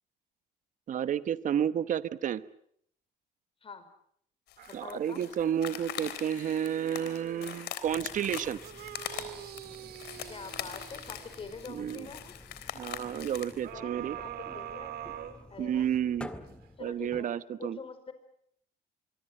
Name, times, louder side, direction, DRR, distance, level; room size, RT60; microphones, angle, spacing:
voice 1, 0.9-2.4 4.7-8.6 11.7-12.1 12.7-14.2 15.6-16.3 16.8-17.8, right 9 dB, 50° right, 14 dB, 1.1 m, -31 dB
sound 1, 4.5-13.6, left 11 dB, 75° left, 3.6 m, -42 dB
sound 2, 4.6-7.7 8.2-11.9 13.6-16.0 16.5-16.6, right 11 dB, 70° right, 2.2 m, -45 dB
voice 2, 4.7-5.2 10.3-12.4 13.6-15.0 15.5-15.9 16.8-17.3 17.6-18.1, left 5 dB, 35° left, 11 dB, 5.0 m, -45 dB
sound 3, 7.8-17.2, left 1 dB, 5° left, 1.9 m, -51 dB
24.5 x 24.0 x 7.8 m, 0.68 s
cardioid pair, 110°, 17 cm